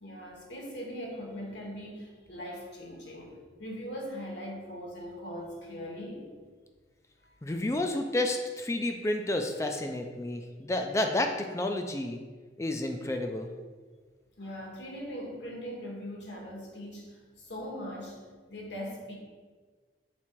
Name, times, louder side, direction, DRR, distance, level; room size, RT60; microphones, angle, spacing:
voice 1, 0.0-6.3 7.2-7.3 14.4-18.2 18.5-19.1, equal, 75° left, 0 dB, 1.3 m, -40 dB
voice 2, 7.4-12.2 12.6-13.5, left 1 dB, 15° left, 4 dB, 0.3 m, -30 dB
6.0 x 3.7 x 4.4 m, 1.5 s
head